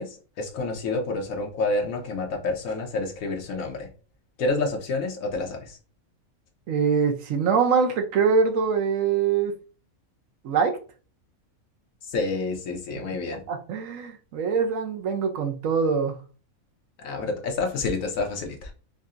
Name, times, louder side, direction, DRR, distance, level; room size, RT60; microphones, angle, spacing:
voice 1, 0.0-3.9 4.4-5.8 12.1-13.4 17.0-18.7, left 3 dB, 70° left, 2 dB, 1.3 m, -28 dB
voice 2, 6.7-9.5 10.4-10.7 13.5-16.2, right 5 dB, 70° right, 5 dB, 1.1 m, -23 dB
5.2 x 2.7 x 2.5 m, 0.36 s
omnidirectional pair, 1.5 m